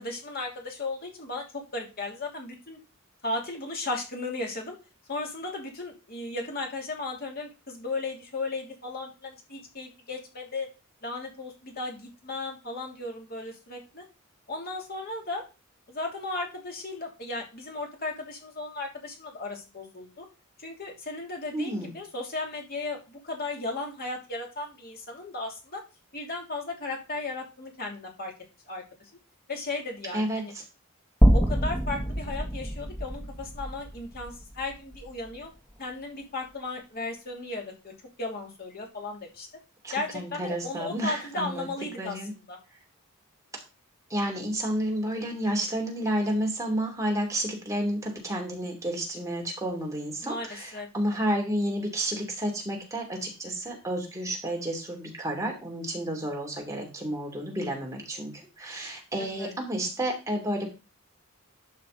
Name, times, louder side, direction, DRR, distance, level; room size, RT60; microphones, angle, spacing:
voice 1, 0.0-2.8 3.2-4.8 5.1-10.7 11.0-14.0 14.5-15.4 15.9-20.2 20.6-25.8 26.1-28.3 28.7-28.8 29.5-30.5 31.3-35.5 35.8-37.9 38.2-39.5 39.9-42.6 50.2-50.9 59.2-59.5, left 2 dB, 45° left, 1 dB, 2.9 m, -35 dB
voice 2, 21.5-21.9 30.1-30.4 39.8-41.7 42.0-42.3 44.1-58.3 58.6-60.7, right 1 dB, 15° right, 0 dB, 2.9 m, -31 dB
sound 1, 31.2-35.4, equal, 10° left, 1.3 m, -26 dB
12.0 x 5.8 x 4.0 m, 0.29 s
head